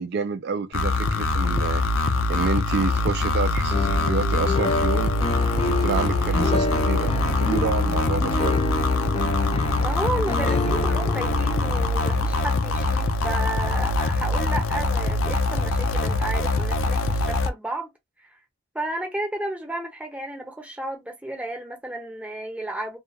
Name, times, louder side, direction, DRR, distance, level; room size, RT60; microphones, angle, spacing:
voice 1, 0.0-5.1 5.5-8.6, right 5 dB, 55° right, 0.4 m, -29 dB
sound 1, 0.7-17.5, left 2 dB, 90° left, 0.4 m, -23 dB
sound 2, 3.7-13.6, left 2 dB, 30° left, 0.4 m, -29 dB
voice 2, 9.8-17.9 18.7-23.0, right 1 dB, 5° right, 0.7 m, -32 dB
2.3 x 2.3 x 2.8 m
head